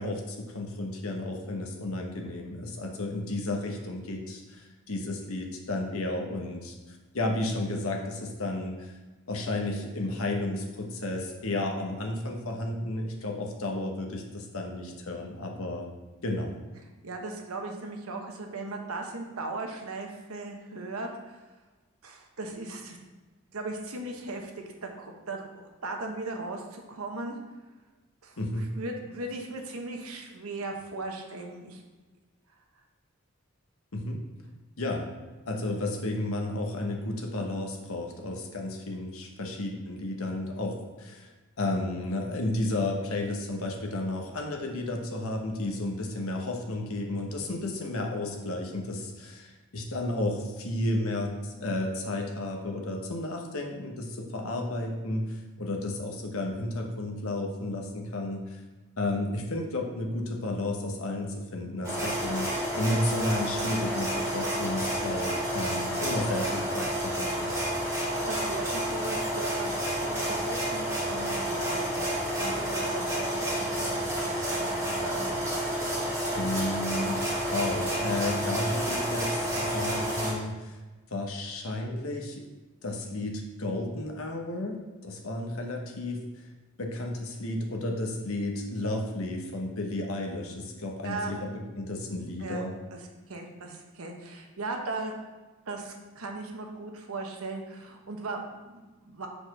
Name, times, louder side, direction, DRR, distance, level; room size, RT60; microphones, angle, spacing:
voice 1, 0.0-8.9 9.3-15.9 16.2-16.6 28.4-28.7 33.9-34.2 34.8-35.1 35.5-41.3 41.6-58.6 59.0-67.6 76.4-77.2 77.5-80.8 81.1-82.5 82.8-86.4 86.8-91.4 91.8-92.7, left 1 dB, 80° left, 1 dB, 1.1 m, -32 dB
voice 2, 17.0-21.4 22.0-23.0 23.5-25.5 25.8-27.4 28.2-31.8 68.1-71.9 72.4-75.3 91.0-91.4 92.4-92.6 92.9-95.1 95.7-99.3, right 2 dB, 90° right, 3 dB, 1.0 m, -38 dB
sound 1, 61.8-80.3, equal, 15° right, 1.8 m, -30 dB
5.1 x 4.4 x 6.0 m, 1.2 s
head